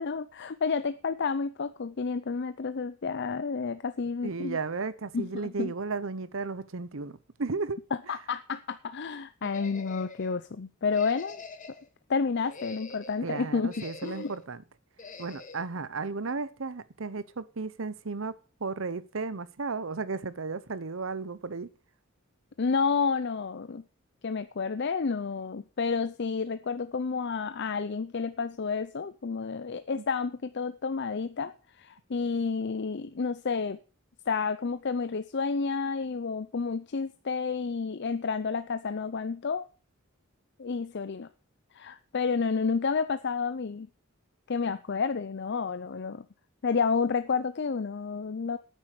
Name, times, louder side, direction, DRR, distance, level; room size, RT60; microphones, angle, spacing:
voice 1, 0.0-4.6 5.1-5.7 8.1-11.4 12.1-13.7 14.0-14.3 22.6-23.8 24.2-33.8 34.3-39.7 40.6-41.3 41.7-43.9 44.5-46.3 46.6-48.6, left 5 dB, 55° left, 0.6 m, -30 dB
voice 2, 4.2-7.8 13.2-14.6 15.2-18.3 18.6-21.7 29.9-30.0, right 4 dB, 70° right, 0.8 m, -34 dB
sound 1, 9.4-10.3 10.9-11.9 12.3-13.2 13.7-14.4 15.0-15.7, left 3 dB, 35° left, 1.4 m, -45 dB
9.1 x 9.0 x 6.6 m
head